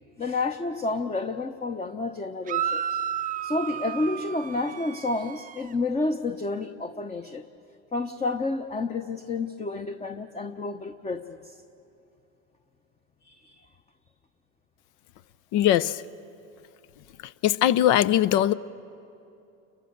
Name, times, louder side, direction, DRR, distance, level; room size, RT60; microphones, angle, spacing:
voice 1, 0.2-3.0 3.4-7.4 7.9-11.6 13.2-13.6, left 3 dB, 15° left, 6 dB, 0.9 m, -30 dB
sound 1, 2.5-5.7, right 9 dB, 20° right, 0.6 m, -32 dB
voice 2, 15.5-15.9 17.4-18.5, left 12 dB, 55° left, 17 dB, 0.7 m, -20 dB
30.0 x 23.0 x 6.9 m, 2.8 s
hypercardioid pair, 95°, 37 cm